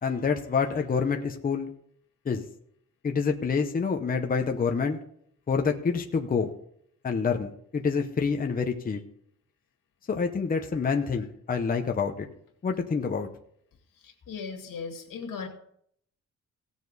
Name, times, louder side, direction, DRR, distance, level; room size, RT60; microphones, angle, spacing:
voice 1, 0.0-1.7 2.3-2.4 3.0-5.0 5.5-6.5 7.0-9.0 10.1-12.3 12.6-13.3, left 5 dB, 25° left, 4 dB, 0.8 m, -27 dB
voice 2, 14.0-15.5, left 5 dB, 90° left, 3 dB, 2.2 m, -37 dB
17.0 x 7.2 x 4.0 m, 0.68 s
wide cardioid pair, 175°, 32 cm